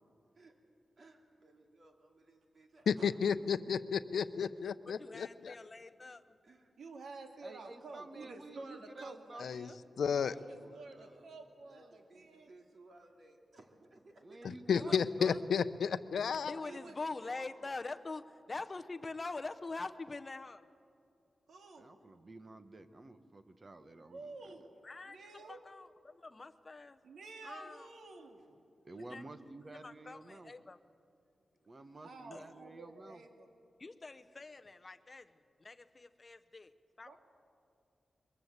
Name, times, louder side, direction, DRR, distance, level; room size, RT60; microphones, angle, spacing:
voice 1, 1.0-3.3 6.4-6.7 9.9-11.3 11.7-14.4 17.2-17.3, right 2 dB, 45° right, 2 dB, 2.6 m, -60 dB
voice 2, 2.9-5.5 9.4-9.7 10.0-10.3 14.4-16.5, left 6 dB, 85° left, 13 dB, 0.7 m, -32 dB
voice 3, 4.9-6.4 14.7-15.5 16.5-20.7 24.8-25.2 25.5-27.0 27.4-27.9 29.1-29.2 29.8-30.8 32.3-32.5 33.8-35.3 35.6-36.7 37.0-37.2, left 3 dB, 25° left, 9 dB, 0.7 m, -44 dB
voice 4, 6.8-9.6 10.3-12.5 16.6-16.9 17.3-17.5 21.5-21.9 24.1-24.8 25.1-25.6 27.0-28.5 32.0-33.5 37.0-37.2, right 3 dB, 85° right, 3 dB, 2.2 m, -51 dB
voice 5, 7.4-9.8 14.2-15.4 21.8-24.5 28.8-30.5 31.6-33.2, right 2 dB, 30° right, 9 dB, 1.1 m, -51 dB
22.5 x 21.0 x 8.1 m, 2.4 s
wide cardioid pair, 165°, 0 cm